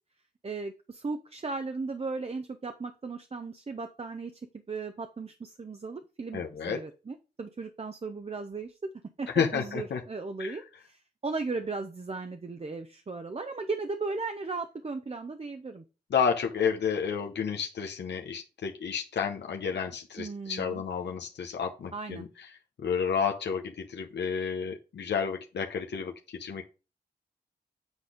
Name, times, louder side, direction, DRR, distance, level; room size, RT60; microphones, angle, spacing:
voice 1, 0.4-4.4 4.7-8.9 9.2-15.8 20.2-20.8 21.9-22.2, right 3 dB, 35° right, 7 dB, 0.7 m, -36 dB
voice 2, 6.3-6.8 9.3-10.0 10.4-10.6 16.1-22.3 22.8-26.6, left 6 dB, 85° left, 3 dB, 0.9 m, -31 dB
8.0 x 4.1 x 5.0 m, 0.32 s
wide cardioid pair, 80°, 17 cm